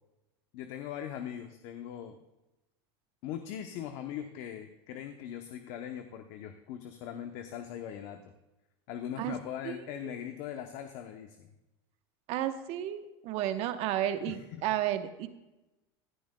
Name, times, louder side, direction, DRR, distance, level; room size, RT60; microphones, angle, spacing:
voice 1, 0.5-2.2 3.2-8.3 8.9-11.5 14.2-14.6, left 10 dB, 55° left, 6 dB, 0.8 m, -40 dB
voice 2, 9.6-10.1 12.3-15.3, right 12 dB, 50° right, 9 dB, 1.0 m, -33 dB
16.0 x 10.5 x 2.2 m, 1.0 s
supercardioid pair, 125°, 13 cm